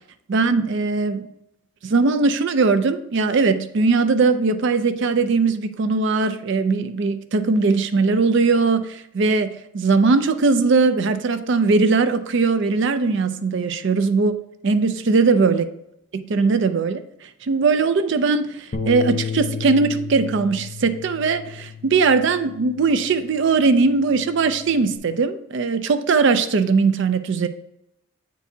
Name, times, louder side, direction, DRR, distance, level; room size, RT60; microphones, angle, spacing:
voice 1, 0.3-1.3 1.8-15.7 16.1-17.0 17.4-27.5, right 4 dB, 55° right, 0.4 m, -20 dB
Bass guitar, 18.7-23.2 23.6-25.0, left 6 dB, 35° left, 0.5 m, -33 dB
7.9 x 4.6 x 2.7 m
head